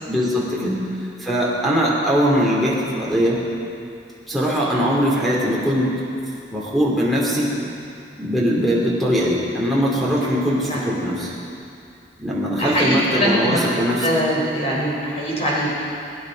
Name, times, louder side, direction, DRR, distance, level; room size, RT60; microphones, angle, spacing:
voice 1, 0.1-0.7 1.2-3.4 4.3-5.9 6.5-7.5 8.2-11.3 12.2-14.1, equal, ahead, -5 dB, 3.1 m, -21 dB
voice 2, 12.6-13.6 14.0-15.7, equal, 35° left, -6 dB, 4.3 m, -22 dB
22.0 x 10.5 x 5.4 m, 2.6 s
head